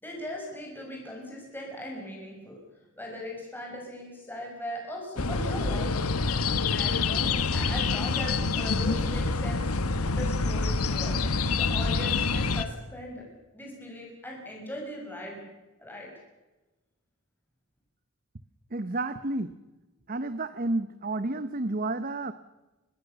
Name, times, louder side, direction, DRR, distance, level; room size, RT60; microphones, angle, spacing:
voice 1, 0.0-2.6 3.0-6.0 6.7-9.6 10.1-11.2 11.5-13.2 13.5-15.4 15.8-16.1, left 1 dB, 10° left, -1 dB, 6.1 m, -39 dB
sound 1, 5.2-12.6, left 4 dB, 85° left, 1.3 m, -27 dB
voice 2, 18.7-19.5 20.1-22.3, right 2 dB, 40° right, 12 dB, 0.8 m, -30 dB
25.5 x 20.0 x 6.9 m, 1.1 s
head